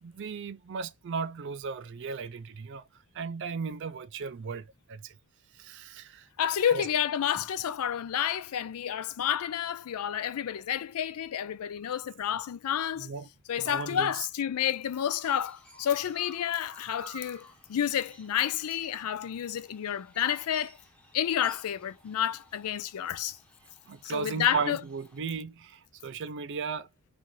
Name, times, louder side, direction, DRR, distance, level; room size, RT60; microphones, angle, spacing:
voice 1, 0.0-2.8 3.1-5.1 5.6-6.3 6.7-6.9 13.0-13.3 13.6-14.3 23.9-26.9, right 5 dB, 55° right, 0.4 m, -36 dB
voice 2, 6.4-13.1 13.5-20.7 21.1-23.4 24.0-24.8, left 9 dB, 75° left, 0.4 m, -30 dB
Chirp tweet, 14.6-25.2, right 1 dB, 5° left, 0.8 m, -54 dB
3.0 x 2.5 x 3.9 m
head